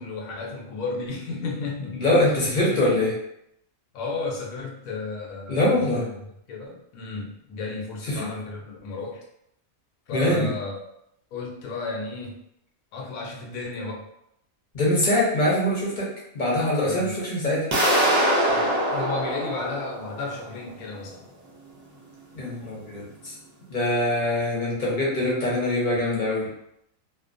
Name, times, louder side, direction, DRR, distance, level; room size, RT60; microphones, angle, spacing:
voice 1, 0.0-3.0 3.9-6.2 6.5-9.2 10.1-10.8 11.3-12.4 12.9-14.1 16.8-17.1 18.5-21.3, left 3 dB, 80° left, 0 dB, 1.0 m, -33 dB
voice 2, 2.0-3.1 5.5-6.0 8.1-8.3 10.1-10.5 14.7-16.1 16.3-17.7 22.3-23.4 23.7-26.5, left 1 dB, 40° left, -6 dB, 0.8 m, -23 dB
sound 1, 17.7-20.5, right 1 dB, 75° right, 0.3 m, -23 dB
2.7 x 2.1 x 2.5 m, 0.76 s
omnidirectional pair, 1.5 m